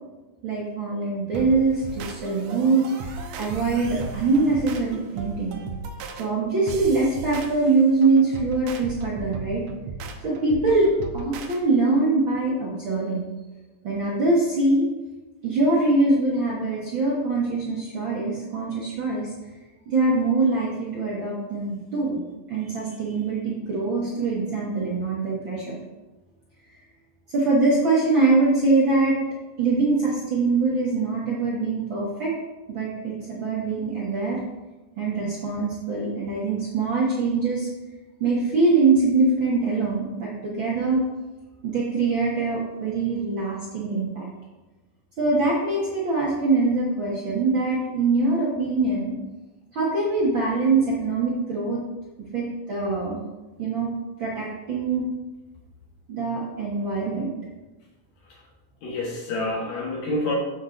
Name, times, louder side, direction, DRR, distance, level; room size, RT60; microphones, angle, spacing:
voice 1, 0.4-5.6 6.2-9.6 10.2-13.2 13.8-14.9 15.4-19.3 19.9-22.2 22.5-25.8 27.3-29.2 29.6-32.3 32.7-34.4 35.0-37.7 38.2-41.0 41.6-44.3 45.2-49.1 49.7-51.8 52.3-53.2 53.6-53.9 54.2-55.1 56.1-57.3, right 3 dB, 55° right, -6 dB, 1.4 m, -23 dB
sound 1, 1.3-11.6, right 4 dB, 80° right, 1.5 m, -36 dB
voice 2, 58.8-60.4, left 2 dB, 65° left, -2 dB, 2.2 m, -28 dB
7.4 x 7.1 x 3.8 m, 1.1 s
omnidirectional pair, 4.0 m